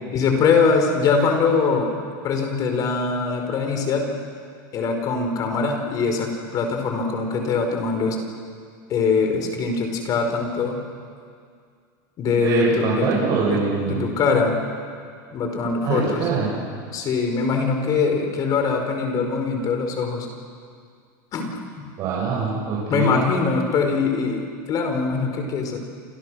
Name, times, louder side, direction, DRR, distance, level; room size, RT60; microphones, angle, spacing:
voice 1, 0.1-1.9 2.2-4.1 4.7-8.2 8.9-10.8 12.2-13.1 13.4-13.6 13.8-14.5 15.3-16.2 16.9-20.3 21.3-21.5 21.8-21.9 22.9-25.8, left 5 dB, 35° left, 4 dB, 4.9 m, -22 dB
voice 2, 12.3-14.1 15.8-16.5 22.0-23.1, right 4 dB, 40° right, -6 dB, 7.4 m, -23 dB
29.0 x 27.0 x 6.5 m, 2.2 s
supercardioid pair, 145°, 11 cm